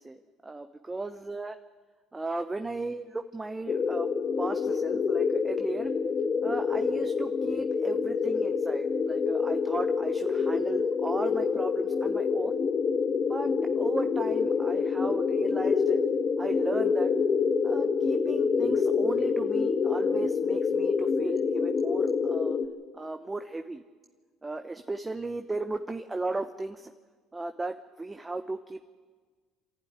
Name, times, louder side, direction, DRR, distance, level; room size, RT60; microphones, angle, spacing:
voice 1, 0.0-1.6 2.1-4.1 4.4-5.9 6.4-12.6 13.3-16.0 16.4-17.1 17.6-22.6 22.9-23.8 24.4-26.9 27.3-28.8, right 2 dB, 15° right, 7 dB, 0.9 m, -36 dB
sound 1, 3.7-22.7, left 5 dB, 40° left, 1.5 m, -27 dB
27.0 x 11.5 x 9.6 m, 1.5 s
supercardioid pair, 95°, 0 cm